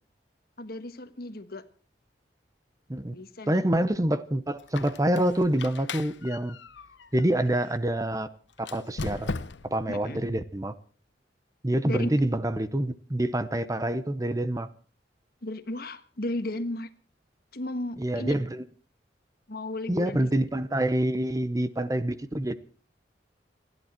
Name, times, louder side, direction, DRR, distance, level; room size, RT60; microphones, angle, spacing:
voice 1, 0.6-1.6 3.1-3.6 9.9-10.2 11.8-12.1 15.4-16.9 17.5-18.4 19.5-20.3, left 1 dB, 55° left, 1.4 m, -34 dB
voice 2, 3.5-6.6 7.1-8.3 8.6-9.3 9.6-10.7 11.6-14.7 18.0-18.6 19.9-22.5, right 1 dB, 20° right, 0.8 m, -26 dB
Squeak, 4.6-7.8 8.6-9.9, left 3 dB, 80° left, 0.9 m, -38 dB
29.5 x 11.0 x 4.4 m
head